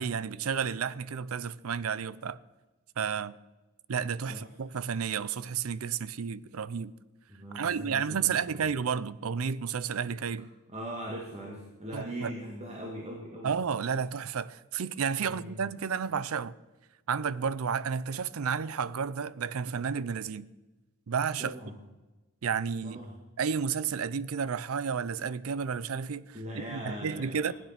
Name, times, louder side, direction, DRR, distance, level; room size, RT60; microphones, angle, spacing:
voice 1, 0.0-2.4 3.0-3.4 3.9-6.9 7.5-10.5 11.9-12.3 13.4-16.5 17.1-20.5 21.1-21.5 22.4-23.0 23.4-27.5, right 6 dB, 90° right, 0.5 m, -31 dB
voice 2, 7.3-8.7 10.7-13.6 15.2-15.7 21.4-21.8 22.8-23.2 26.3-27.5, equal, 30° right, 2.0 m, -40 dB
16.5 x 9.5 x 5.9 m
head